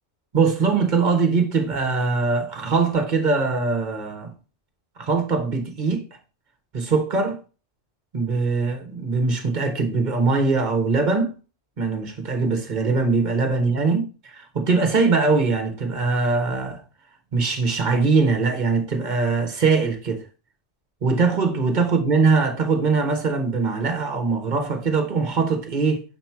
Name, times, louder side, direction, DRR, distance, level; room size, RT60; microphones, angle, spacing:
voice 1, 0.3-4.3 5.0-6.0 6.7-7.4 8.1-11.3 11.8-16.8 17.3-20.2 21.0-26.0, right 4 dB, 40° right, 1.2 m, -22 dB
6.4 x 3.0 x 5.7 m
omnidirectional pair, 1.2 m